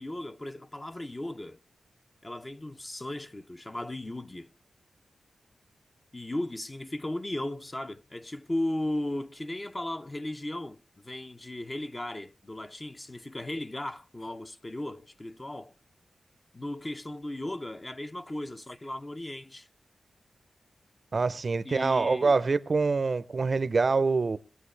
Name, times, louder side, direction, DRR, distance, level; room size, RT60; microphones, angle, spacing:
voice 1, 0.0-1.6 2.2-4.5 6.1-15.7 16.5-19.7 21.6-22.3, left 1 dB, 20° left, 0.6 m, -36 dB
voice 2, 21.1-24.4, right 4 dB, 45° right, 0.6 m, -25 dB
22.0 x 7.7 x 3.2 m
wide cardioid pair, 100°, 0 cm